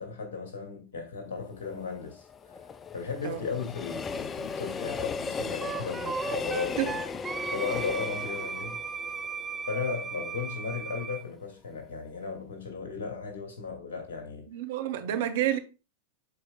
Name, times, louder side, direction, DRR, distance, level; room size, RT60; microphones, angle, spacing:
voice 1, 0.0-7.0 7.3-8.8 9.7-14.4, left 5 dB, 60° left, 2.5 m, -36 dB
Train, 1.5-10.5 10.9-11.0, left 5 dB, 20° left, 0.4 m, -37 dB
Wind instrument woodwind instrument, 5.6-11.2, right 5 dB, 15° right, 0.7 m, -36 dB
voice 2, 14.5-15.6, right 12 dB, 55° right, 0.8 m, -29 dB
11.5 x 4.8 x 2.4 m
figure-of-eight pair, 90°, 0 cm